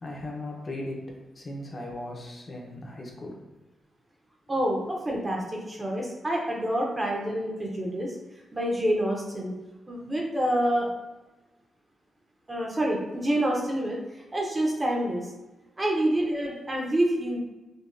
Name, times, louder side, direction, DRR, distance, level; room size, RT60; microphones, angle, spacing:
voice 1, 0.0-1.0 1.4-3.4, left 1 dB, 30° left, -1 dB, 0.6 m, -37 dB
voice 2, 4.5-8.2 8.5-9.5 9.9-10.9 12.5-15.3 15.8-17.4, right 1 dB, 15° right, -1 dB, 0.5 m, -27 dB
5.1 x 2.2 x 2.4 m, 1.1 s
wide cardioid pair, 175°, 0 cm